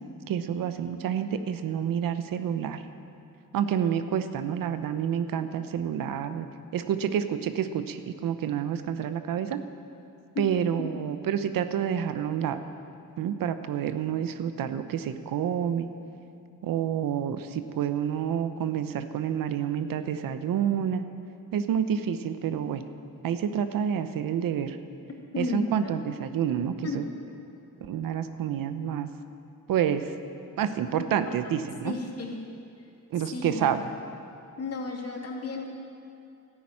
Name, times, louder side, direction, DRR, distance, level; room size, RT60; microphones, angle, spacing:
voice 1, 0.3-2.8 3.5-6.5 6.7-9.6 10.4-12.6 13.2-15.9 16.6-21.0 21.5-22.8 23.2-24.8 25.4-27.1 27.8-29.1 29.7-30.1 30.6-32.0 33.1-33.8, right 8 dB, 75° right, 10 dB, 0.8 m, -28 dB
voice 2, 25.3-26.0 26.8-27.1 30.9-31.6 31.8-32.4 33.3-33.9 34.6-35.7, left 3 dB, 45° left, 0 dB, 2.5 m, -34 dB
12.0 x 10.0 x 8.7 m, 2.7 s
cardioid pair, 85°, 34 cm